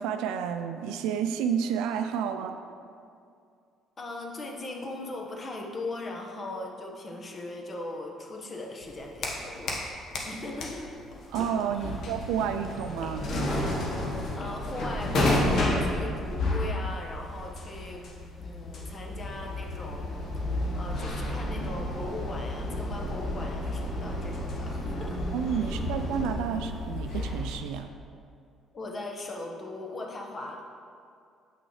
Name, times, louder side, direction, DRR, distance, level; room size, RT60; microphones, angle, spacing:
voice 1, 0.0-2.6 11.3-13.3 25.3-27.9, right 8 dB, 80° right, 7 dB, 0.3 m, -30 dB
voice 2, 4.0-9.9 10.2-11.0 11.7-12.0 14.4-18.1 18.4-20.1 20.4-25.2 25.6-25.9 28.7-30.6, left 2 dB, 40° left, 1 dB, 1.2 m, -39 dB
sound 1, 8.8-9.9 10.1-27.6, left 1 dB, 60° left, 1.2 m, -31 dB
8.6 x 6.1 x 3.2 m, 2.4 s
hypercardioid pair, 60°, 0 cm